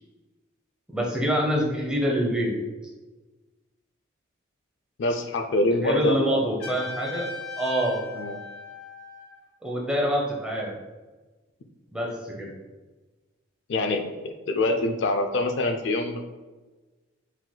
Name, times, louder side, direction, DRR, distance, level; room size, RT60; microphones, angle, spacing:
voice 1, 0.9-2.5 5.8-7.3 7.6-8.0 9.6-10.7 11.9-12.5, equal, 5° right, -3 dB, 0.7 m, -26 dB
voice 2, 5.0-6.5 8.2-8.4 13.7-16.2, left 2 dB, 60° left, 6 dB, 0.4 m, -25 dB
Trumpet, 6.6-9.4, left 3 dB, 85° left, 1.3 m, -38 dB
4.6 x 3.8 x 2.2 m, 1.2 s
head